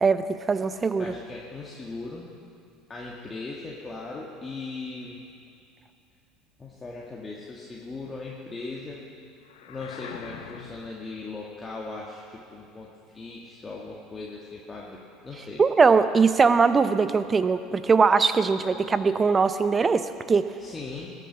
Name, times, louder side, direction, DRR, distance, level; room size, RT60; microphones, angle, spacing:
voice 1, 0.0-1.1 15.6-20.5, right 5 dB, 25° right, 12 dB, 0.7 m, -21 dB
voice 2, 0.9-2.2 2.9-5.2 6.6-9.0 9.7-15.6 20.6-21.1, left 3 dB, 20° left, -3 dB, 1.8 m, -38 dB
sound 1, 9.4-11.0, left 7 dB, 70° left, 1.0 m, -42 dB
20.5 x 8.2 x 5.9 m, 2.5 s
figure-of-eight pair, 70°, 0 cm